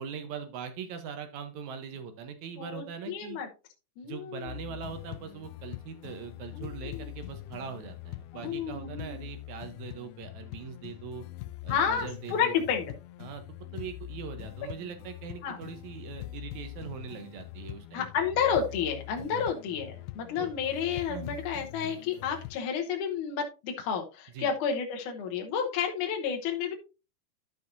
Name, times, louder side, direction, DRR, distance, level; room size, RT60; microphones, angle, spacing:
voice 1, 0.0-3.4 4.0-11.2 11.6-12.6 13.2-18.1 19.3-19.5 20.4-20.5 21.1-21.4 24.3-24.5, right 7 dB, 70° right, 8 dB, 1.8 m, -41 dB
voice 2, 2.6-3.5 4.0-4.5 6.5-7.1 8.3-9.2 11.7-12.9 15.4-15.6 17.9-26.7, left 7 dB, 70° left, 2 dB, 2.1 m, -31 dB
sound 1, 4.5-22.6, left 16 dB, 85° left, 2.3 m, -43 dB
12.5 x 5.6 x 2.6 m, 0.30 s
omnidirectional pair, 4.3 m